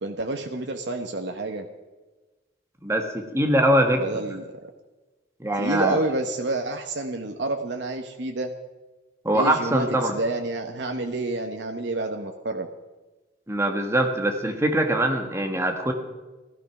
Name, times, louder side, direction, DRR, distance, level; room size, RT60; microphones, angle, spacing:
voice 1, 0.0-1.7 4.0-4.4 5.6-8.5 9.3-12.7, right 2 dB, 85° right, 4 dB, 1.1 m, -29 dB
voice 2, 2.8-4.0 5.4-6.0 9.2-10.2 13.5-15.9, right 1 dB, 15° right, 4 dB, 1.5 m, -22 dB
16.0 x 12.5 x 6.0 m, 1.2 s
head